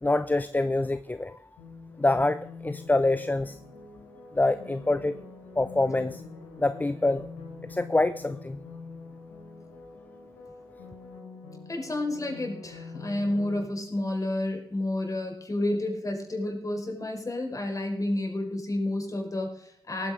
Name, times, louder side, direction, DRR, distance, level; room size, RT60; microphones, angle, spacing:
voice 1, 0.0-1.4 2.0-3.6 4.3-5.2 5.6-6.2 6.6-7.2 7.7-8.6, left 2 dB, 15° left, 14 dB, 0.6 m, -25 dB
sound 1, 1.6-13.6, left 4 dB, 85° left, 4.3 m, -45 dB
voice 2, 11.7-20.1, left 1 dB, 30° left, 2 dB, 4.9 m, -30 dB
19.0 x 9.3 x 3.7 m, 0.73 s
hypercardioid pair, 40°, 11 cm